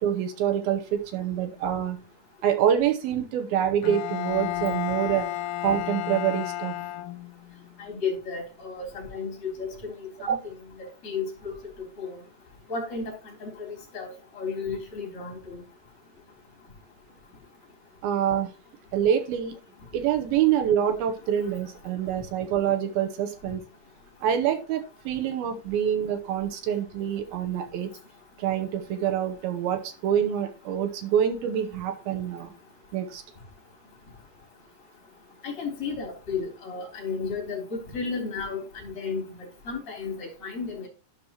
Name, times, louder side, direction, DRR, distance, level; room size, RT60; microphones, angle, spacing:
voice 1, 0.0-2.0 2.4-5.3 5.6-6.8 10.3-10.4 18.0-18.5 18.9-19.5 19.9-23.6 24.2-27.9 28.4-32.5 32.9-33.2, right 9 dB, 75° right, 2.4 m, -26 dB
Bowed string instrument, 3.8-7.6, left 13 dB, 85° left, 2.8 m, -32 dB
voice 2, 7.8-11.5 12.0-12.2 12.7-13.1 13.4-15.6 35.4-39.2 39.6-40.9, left 5 dB, 25° left, 3.4 m, -33 dB
12.5 x 5.4 x 3.0 m
omnidirectional pair, 5.1 m